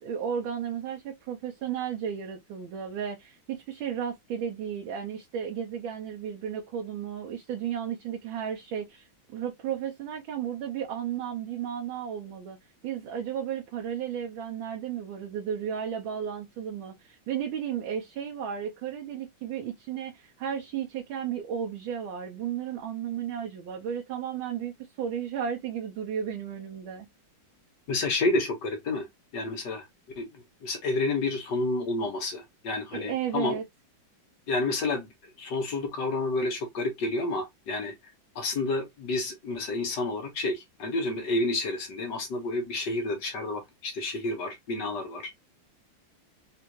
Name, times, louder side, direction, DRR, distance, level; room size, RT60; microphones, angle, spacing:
voice 1, 0.0-12.6 12.8-27.1 32.9-33.6, right 8 dB, 80° right, 1.5 m, -34 dB
voice 2, 27.9-29.1 29.3-29.8 30.2-30.3 30.6-33.6 34.5-35.1 35.4-37.9 38.3-45.3, left 2 dB, 65° left, 1.8 m, -30 dB
4.3 x 2.5 x 3.0 m
omnidirectional pair, 2.1 m